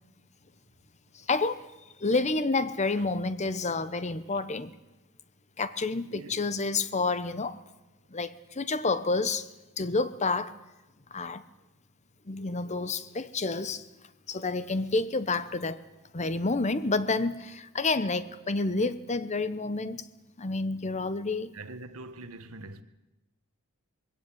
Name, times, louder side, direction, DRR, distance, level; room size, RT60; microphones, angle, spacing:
voice 1, 1.1-1.7 2.0-4.7 5.6-7.6 8.1-9.5 9.8-10.5 11.1-11.4 12.3-13.8 14.3-15.8 16.1-20.0 20.4-21.5, left 3 dB, 30° left, 0.9 m, -29 dB
voice 2, 6.1-6.4 14.3-14.4 21.5-22.8, right 2 dB, 80° right, 1.4 m, -44 dB
20.5 x 17.0 x 9.0 m
head